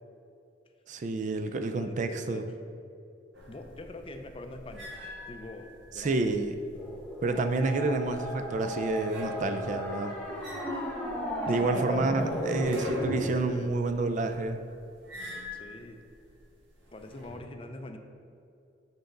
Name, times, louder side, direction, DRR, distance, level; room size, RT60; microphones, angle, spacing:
voice 1, 0.9-2.5 6.0-6.5 7.2-10.2 11.5-14.6, right 3 dB, 40° right, 7 dB, 0.4 m, -29 dB
voice 2, 1.7-2.5 3.5-4.9 5.3-6.4 11.4-13.8 15.5-16.0 16.9-18.0, left 2 dB, 30° left, 6 dB, 0.5 m, -44 dB
sound 1, 3.3-17.4, left 2 dB, 80° right, 1.5 m, -45 dB
sound 2, 6.7-13.3, equal, 5° left, 1.0 m, -35 dB
8.1 x 5.2 x 3.8 m, 2.5 s
head